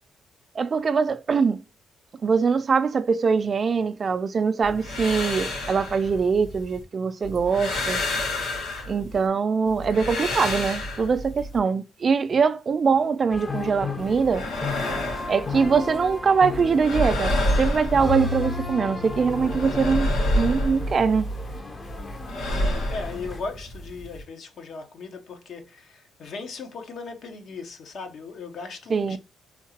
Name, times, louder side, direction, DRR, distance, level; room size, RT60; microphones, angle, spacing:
voice 1, 0.6-1.6 2.2-8.0 8.9-14.5 15.3-17.3 17.6-20.1 20.4-21.3 28.9-29.2, right 5 dB, 40° right, 0.3 m, -22 dB
sound 1, 4.6-6.8 7.2-9.3 9.7-11.6 14.0-16.2 16.4-18.7 19.0-21.6 21.8-24.2, left 1 dB, 85° left, 2.1 m, -29 dB
sound 2, 13.3-23.4, left 4 dB, 30° left, 0.7 m, -34 dB
voice 2, 22.5-29.2, left 4 dB, 65° left, 0.9 m, -37 dB
3.6 x 2.8 x 2.8 m
cardioid pair, 90°, 0 cm